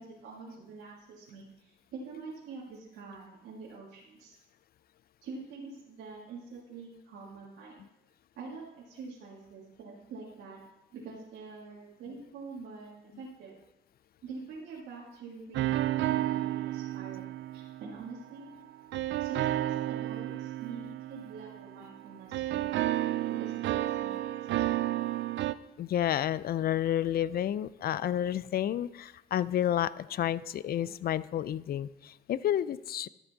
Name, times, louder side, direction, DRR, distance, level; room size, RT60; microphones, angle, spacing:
voice 1, 0.0-4.3 5.2-7.8 8.4-10.6 10.9-13.6 14.2-18.5 19.2-22.8 23.3-24.7, right 4 dB, 85° right, -5 dB, 1.7 m, -45 dB
sound 1, 15.5-18.2 18.9-22.0 22.3-25.5, right 14 dB, 70° right, 0.4 m, -31 dB
voice 2, 25.8-33.1, left 11 dB, 50° left, 18 dB, 0.4 m, -30 dB
13.0 x 6.0 x 4.0 m, 0.95 s
cardioid pair, 90°, 20 cm